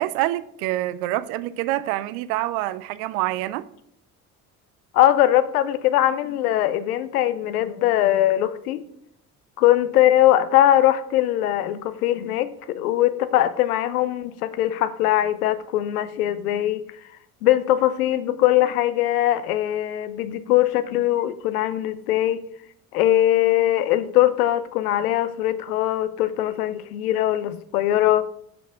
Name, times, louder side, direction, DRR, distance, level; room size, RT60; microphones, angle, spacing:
voice 1, 0.0-3.7, right 16 dB, 70° right, 0.5 m, -26 dB
voice 2, 4.9-8.8 9.6-16.8 17.4-22.4 22.9-28.3, left 13 dB, 85° left, 0.6 m, -21 dB
6.0 x 4.6 x 4.6 m
hypercardioid pair, 60°, 43 cm